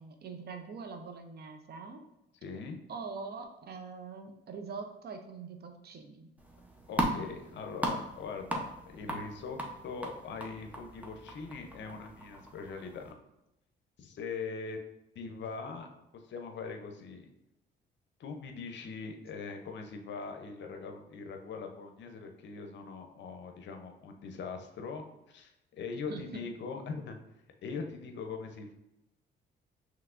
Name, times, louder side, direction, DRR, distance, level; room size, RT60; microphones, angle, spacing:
voice 1, 0.0-2.0 2.9-6.3 26.1-26.4, right 4 dB, 55° right, 6 dB, 0.7 m, -43 dB
voice 2, 2.4-2.8 6.9-9.6 9.8-13.1 14.0-14.8 15.1-15.9 16.3-17.3 18.2-25.5 25.8-27.2 27.6-28.7, left 4 dB, 65° left, 5 dB, 0.7 m, -41 dB
sound 1, 6.4-13.1, right 1 dB, 5° right, 0.7 m, -38 dB
5.7 x 3.0 x 2.5 m, 0.89 s
cardioid pair, 90°, 20 cm